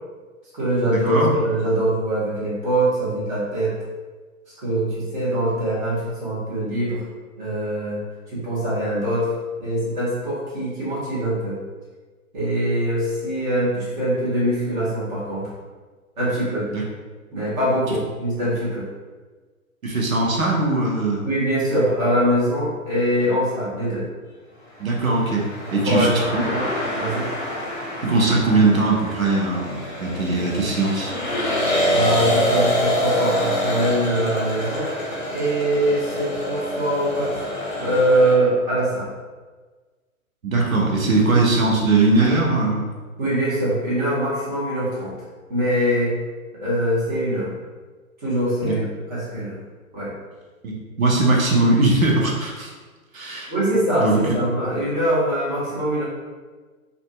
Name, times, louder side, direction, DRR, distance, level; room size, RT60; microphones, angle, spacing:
voice 1, 0.5-3.7 4.6-7.0 7.4-8.0 8.3-9.3 9.6-11.6 12.3-15.5 16.2-16.7 17.3-18.9 21.2-24.1 25.7-26.1 26.4-26.7 26.9-27.3 31.9-34.9 35.3-37.5 37.8-39.1 43.2-45.2 45.5-46.1 46.6-47.5 48.2-49.6 49.9-50.1 53.5-56.0, right 1 dB, 30° right, -9 dB, 1.1 m, -23 dB
voice 2, 19.8-21.2 24.8-26.4 28.0-31.1 40.4-42.9 48.6-48.7 50.6-52.7 53.1-53.5 54.0-54.3, right 2 dB, 70° right, -1 dB, 0.8 m, -20 dB
sound 1, 24.9-38.3, left 1 dB, 35° left, 0.7 m, -26 dB
2.5 x 2.5 x 2.2 m, 1.4 s
figure-of-eight pair, 120°, 43 cm